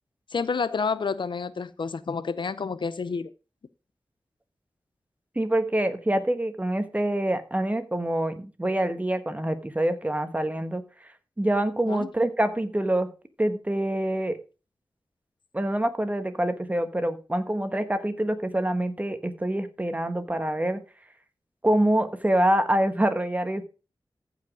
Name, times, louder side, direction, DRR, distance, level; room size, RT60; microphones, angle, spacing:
voice 1, 0.3-3.3 11.9-12.1, left 5 dB, 75° left, 0.7 m, -29 dB
voice 2, 5.3-10.8 11.4-13.1 13.4-14.4 15.5-20.8 21.6-23.7, right 1 dB, 20° right, 1.3 m, -25 dB
15.0 x 5.1 x 4.9 m
wide cardioid pair, 80°, 8 cm